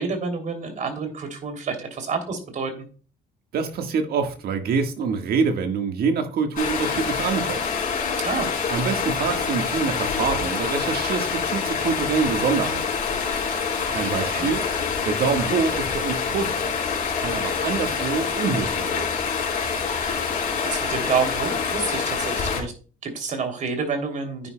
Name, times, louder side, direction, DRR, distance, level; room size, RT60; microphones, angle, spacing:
voice 1, 0.0-2.9 8.2-8.5 14.0-14.5 19.8-20.3 20.6-22.7 23.0-24.5, right 5 dB, 50° right, 3.0 m, -29 dB
voice 2, 3.5-7.6 8.7-12.8 13.9-14.6 15.0-16.5 17.1-19.1, right 5 dB, 65° right, 1.6 m, -25 dB
Stream, 6.6-22.6, left 6 dB, 50° left, 4.1 m, -26 dB
9.8 x 9.8 x 2.2 m
cardioid pair, 110°, 17 cm